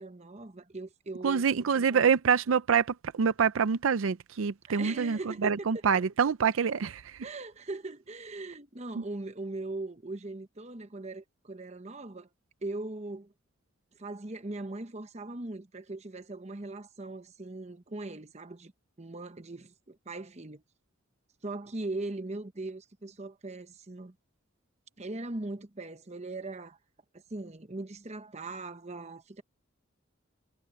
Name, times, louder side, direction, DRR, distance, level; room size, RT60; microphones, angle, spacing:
voice 1, 0.0-1.4 1.9-2.1 4.7-5.5 7.2-12.3 12.6-13.3 14.0-18.7 19.0-20.6 21.4-24.1 25.0-26.8 27.3-29.4, right 2 dB, 30° right, 1.0 m, -40 dB
voice 2, 1.2-7.2 9.0-9.1, right 6 dB, 75° right, 0.5 m, -26 dB
head